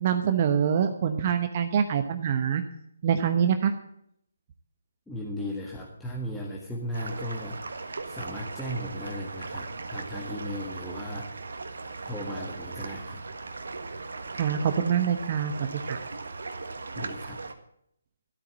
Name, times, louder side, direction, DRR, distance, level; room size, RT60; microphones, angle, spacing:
voice 1, 0.0-2.6 3.0-3.7 14.3-16.0, right 8 dB, 40° right, 7 dB, 1.0 m, -25 dB
voice 2, 5.1-11.5 12.1-13.2 17.0-17.4, equal, 5° left, -4 dB, 1.7 m, -36 dB
sound 1, 6.9-17.5, right 3 dB, 75° right, 1.6 m, -38 dB
13.0 x 8.7 x 7.5 m, 0.71 s
figure-of-eight pair, 150°, 0 cm